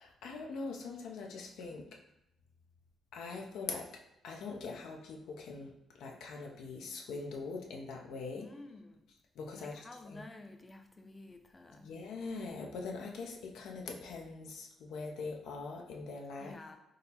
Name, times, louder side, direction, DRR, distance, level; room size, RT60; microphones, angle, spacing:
voice 1, 0.0-1.8 3.1-3.8 4.2-8.5 9.4-10.2 11.7-16.6, left 4 dB, 80° left, 1 dB, 0.5 m, -42 dB
voice 2, 8.4-9.0 9.5-11.9 16.4-16.8, left 2 dB, 20° left, 6 dB, 0.5 m, -51 dB
3.7 x 2.0 x 4.2 m, 0.85 s
cardioid pair, 90°, 0 cm